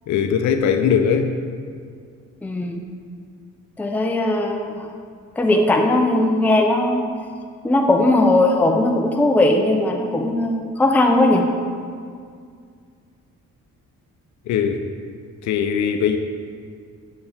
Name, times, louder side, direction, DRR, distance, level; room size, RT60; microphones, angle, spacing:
voice 1, 0.1-1.3 14.5-14.8 15.4-16.2, left 7 dB, 70° left, 6 dB, 0.5 m, -20 dB
voice 2, 2.4-2.8 3.8-4.9 5.4-7.1 7.6-11.5, left 1 dB, 5° left, 2 dB, 0.5 m, -18 dB
6.6 x 4.4 x 3.5 m, 2.1 s
cardioid pair, 90°, 30 cm